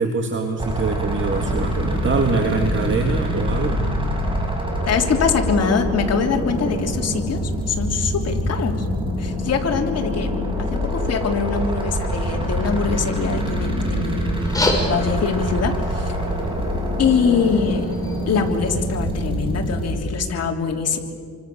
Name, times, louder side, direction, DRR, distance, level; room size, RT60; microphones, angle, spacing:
voice 1, 0.0-3.8, right 4 dB, 40° right, 3 dB, 2.5 m, -23 dB
sound 1, 0.6-20.0, equal, 15° right, 7.1 m, -25 dB
voice 2, 4.9-7.4 7.7-8.9 9.2-10.3 10.6-14.3 14.6-16.1 17.0-17.9 18.3-21.0, left 6 dB, 55° left, 2 dB, 3.6 m, -23 dB
sound 2, 14.3-19.3, left 1 dB, 10° left, 6.2 m, -30 dB
28.5 x 24.5 x 7.1 m, 2.3 s
cardioid pair, 90°, 30 cm